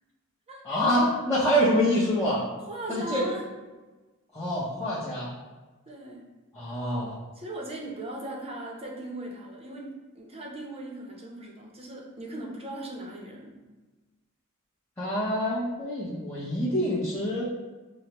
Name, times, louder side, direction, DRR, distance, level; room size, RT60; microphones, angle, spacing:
voice 1, 0.6-2.5 2.9-3.3 4.3-5.3 6.5-7.2 15.0-17.4, equal, 10° left, -10 dB, 0.8 m, -26 dB
voice 2, 2.7-3.4 5.9-6.2 7.3-13.6, right 1 dB, 25° right, -1 dB, 0.7 m, -38 dB
6.4 x 2.2 x 2.9 m, 1.2 s
head